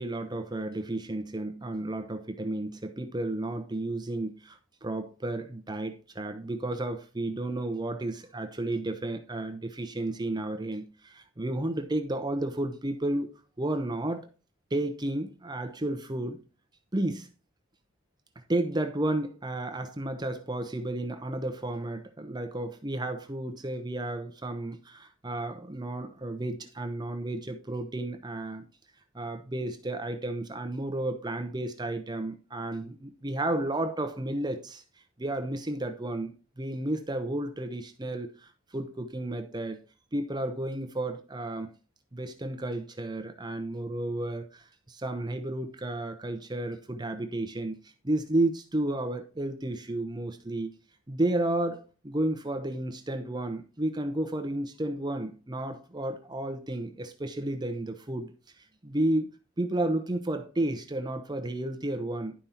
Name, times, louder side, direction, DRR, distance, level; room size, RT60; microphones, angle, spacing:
voice 1, 0.0-13.3 13.6-14.3 14.7-16.4 16.9-17.3 18.5-28.6 29.1-34.8 35.2-39.8 40.1-41.7 42.1-50.7 51.1-59.3 59.6-62.3, right 1 dB, 20° right, 0.8 m, -32 dB
11.5 x 5.3 x 4.3 m
head